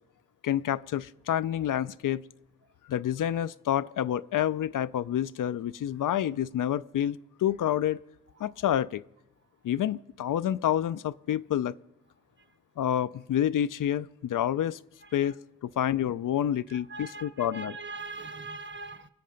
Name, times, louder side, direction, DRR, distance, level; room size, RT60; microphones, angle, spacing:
voice 1, 0.4-2.2 2.9-8.0 8.4-9.0 9.6-11.7 12.8-14.8 15.1-15.4 15.6-17.8, left 10 dB, 70° left, 0.5 m, -28 dB
voice 2, 16.7-19.1, right 3 dB, 35° right, 1.1 m, -41 dB
24.5 x 8.4 x 5.1 m
cardioid pair, 50°, 33 cm